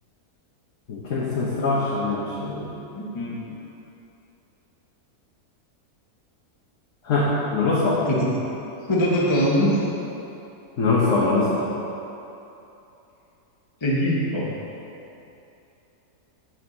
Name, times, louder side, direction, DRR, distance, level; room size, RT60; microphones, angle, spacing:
voice 1, 0.9-2.7 7.0-8.1 10.8-11.7, left 3 dB, 55° left, -6 dB, 1.4 m, -23 dB
voice 2, 2.9-3.4 8.1-8.3 8.9-9.8 13.8-14.5, equal, 20° left, -5 dB, 1.2 m, -22 dB
7.9 x 7.9 x 4.0 m, 2.9 s
omnidirectional pair, 1.7 m